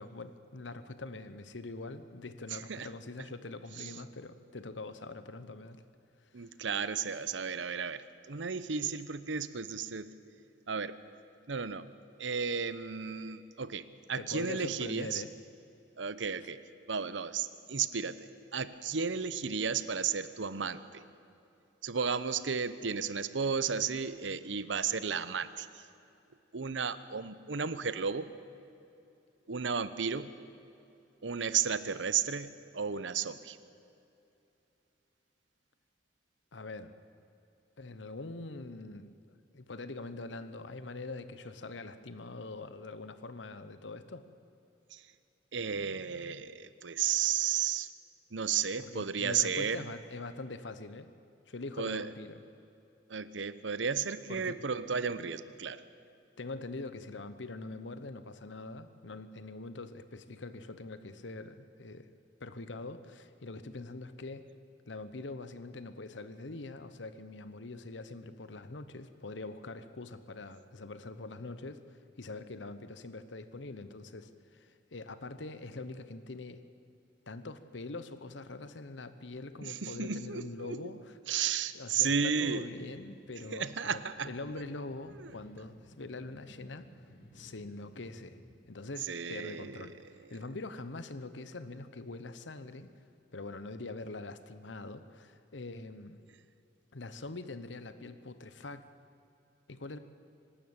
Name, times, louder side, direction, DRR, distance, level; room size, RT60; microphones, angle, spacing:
voice 1, 0.0-5.8 6.4-6.5 14.1-15.3 36.5-36.9 37.8-39.1 39.5-44.2 48.8-51.1 51.5-52.4 54.3-54.6 56.4-62.1 62.4-64.5 64.9-76.6 77.3-81.2 81.7-86.9 87.3-88.4 88.7-92.9 93.3-96.2 96.9-98.9 99.7-100.0, left 2 dB, 85° left, 12 dB, 1.0 m, -43 dB
voice 2, 2.5-2.9 3.8-3.9 6.3-10.2 10.7-11.0 11.5-11.9 12.2-15.2 16.0-16.6 16.9-21.0 21.8-25.9 26.5-28.3 29.5-30.3 31.2-33.6 44.9-45.0 45.5-47.9 48.3-49.8 51.8-52.1 53.1-55.8 79.6-80.8 81.3-82.7 83.5-84.3 85.2-85.3 89.1-89.9, right 6 dB, 85° right, 14 dB, 0.8 m, -33 dB
sound 1, 84.0-88.7, equal, 60° left, 3.1 m, -58 dB
25.0 x 13.0 x 8.9 m, 2.8 s
head